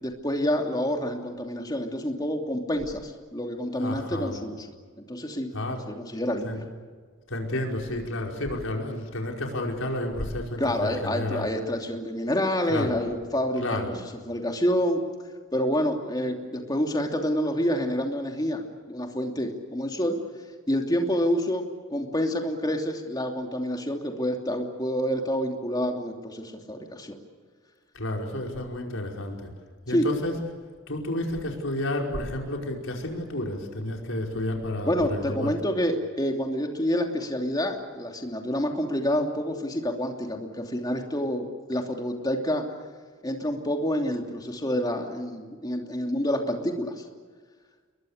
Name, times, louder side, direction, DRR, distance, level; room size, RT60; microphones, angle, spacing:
voice 1, 0.0-5.5 5.9-6.6 10.6-13.9 14.2-15.0 15.5-20.2 20.7-27.2 29.9-30.0 34.9-42.6 43.2-47.0, equal, 20° left, 3 dB, 2.9 m, -28 dB
voice 2, 3.8-4.4 5.5-5.8 6.4-6.6 7.3-11.5 12.7-12.9 13.6-13.9 27.9-29.5 29.9-30.3 30.9-35.5, left 1 dB, 80° left, 1 dB, 5.3 m, -31 dB
29.0 x 22.5 x 6.7 m, 1.5 s
head